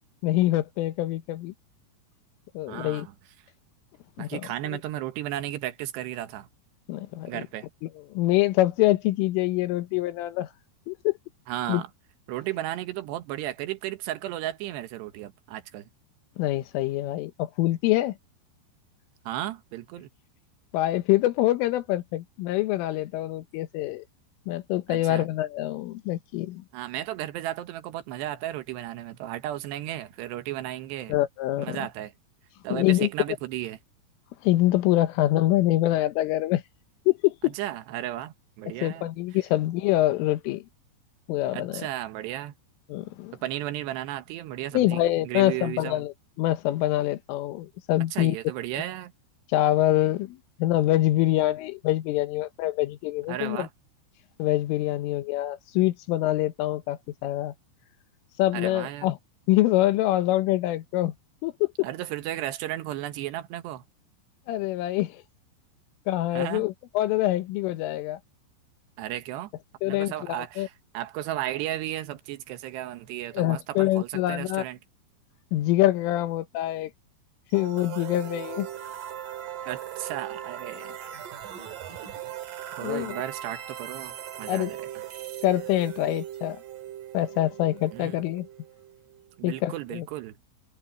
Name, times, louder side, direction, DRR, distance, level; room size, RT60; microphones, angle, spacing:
voice 1, 0.2-1.5 2.6-3.1 4.2-4.4 6.9-7.4 7.8-10.5 10.9-11.1 11.7-11.8 16.4-18.2 20.7-24.1 24.5-26.6 31.1-31.8 32.7-33.1 34.4-36.6 37.1-37.5 38.8-40.6 41.3-41.9 42.9-43.4 44.8-48.4 49.5-53.7 54.4-57.5 58.4-59.2 59.5-61.1 61.4-61.7 64.5-65.2 66.1-68.2 69.8-70.7 73.3-74.7 75.5-76.9 77.5-78.7 82.8-83.2 84.5-84.7 85.4-86.6 87.1-88.5 89.4-90.1, left 15 dB, 90° left, 3.8 m, -25 dB
voice 2, 2.7-3.1 4.2-6.5 7.3-7.7 11.5-11.9 12.3-15.9 19.3-20.1 24.9-25.3 26.7-31.1 31.6-32.1 32.6-33.8 37.4-39.1 41.5-42.5 43.4-46.0 48.1-49.1 53.3-53.7 58.5-59.2 61.8-63.8 66.3-66.7 69.0-69.5 69.9-74.8 79.7-80.9 82.7-85.0 87.9-88.2 89.4-90.4, right 14 dB, 70° right, 3.1 m, -34 dB
sound 1, 77.5-89.3, right 11 dB, 55° right, 3.0 m, -39 dB
omnidirectional pair, 5.6 m